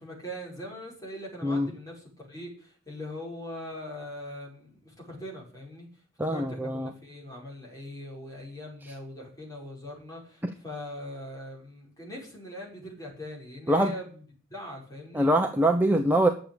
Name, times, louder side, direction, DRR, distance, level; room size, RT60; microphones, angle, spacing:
voice 1, 0.0-5.9 6.2-14.2 14.5-15.3, left 1 dB, 20° left, -2 dB, 5.7 m, -41 dB
voice 2, 6.2-6.9 13.7-13.9 15.1-16.3, right 1 dB, 10° right, 4 dB, 0.9 m, -23 dB
10.5 x 7.4 x 8.7 m, 0.42 s
head